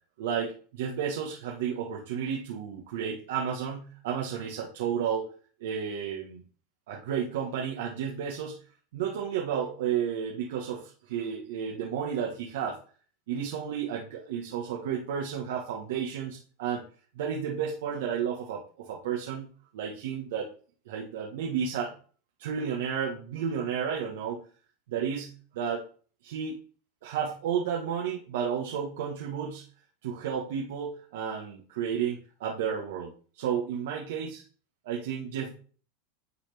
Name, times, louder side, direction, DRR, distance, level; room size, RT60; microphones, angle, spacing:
voice 1, 0.2-5.3 5.6-6.4 6.9-8.6 8.9-12.8 13.3-16.8 17.1-19.5 19.7-20.5 20.9-21.9 22.4-24.4 24.9-25.8 26.2-26.6 27.0-29.6 30.0-34.4 34.8-35.5, right 7 dB, 75° right, -1 dB, 1.4 m, -32 dB
9.4 x 4.2 x 3.4 m, 0.41 s
supercardioid pair, 120°, 0 cm